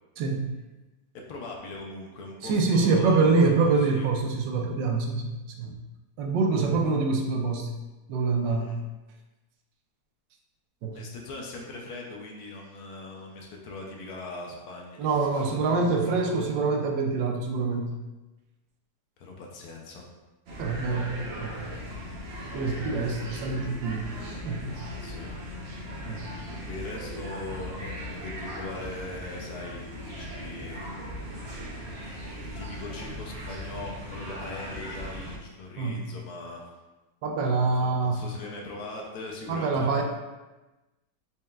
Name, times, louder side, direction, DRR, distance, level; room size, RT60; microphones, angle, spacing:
voice 1, 0.2-0.5 2.4-5.3 5.6-5.8 6.2-7.7 8.1-8.8 10.8-11.0 15.0-17.9 20.6-21.1 21.4-21.8 22.5-24.8 26.1-26.3 35.8-36.0 37.2-38.2 39.5-40.0, right 4 dB, 85° right, 2 dB, 1.3 m, -25 dB
voice 2, 1.3-4.1 8.4-8.8 10.9-16.5 19.2-20.1 20.5-21.0 24.9-25.3 26.6-30.8 32.4-36.6 37.5-40.0, left 2 dB, 70° left, 0 dB, 1.0 m, -40 dB
sound 1, 20.5-35.4, equal, 70° right, 0.6 m, -38 dB
4.3 x 3.5 x 2.3 m, 1.1 s
omnidirectional pair, 1.9 m